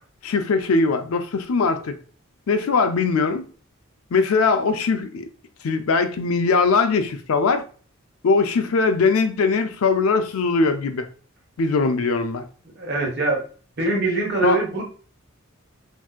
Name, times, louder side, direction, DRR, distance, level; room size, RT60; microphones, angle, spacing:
voice 1, 0.2-2.0 2.5-3.5 4.1-5.3 5.6-7.6 8.2-11.1 11.6-12.4 14.4-14.6, left 4 dB, 80° left, 0.4 m, -20 dB
voice 2, 12.7-13.4 13.8-14.8, right 2 dB, 50° right, 1.1 m, -23 dB
3.7 x 2.6 x 2.3 m
head